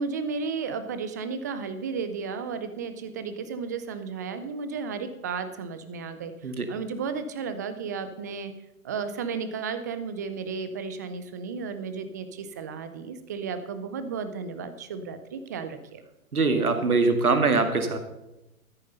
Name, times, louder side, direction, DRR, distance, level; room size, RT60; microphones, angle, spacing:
voice 1, 0.0-8.5 8.8-16.0, right 5 dB, 15° right, 10 dB, 0.4 m, -33 dB
voice 2, 16.3-18.0, right 4 dB, 80° right, 7 dB, 2.0 m, -22 dB
13.5 x 9.3 x 5.5 m, 0.93 s
figure-of-eight pair, 120°, 43 cm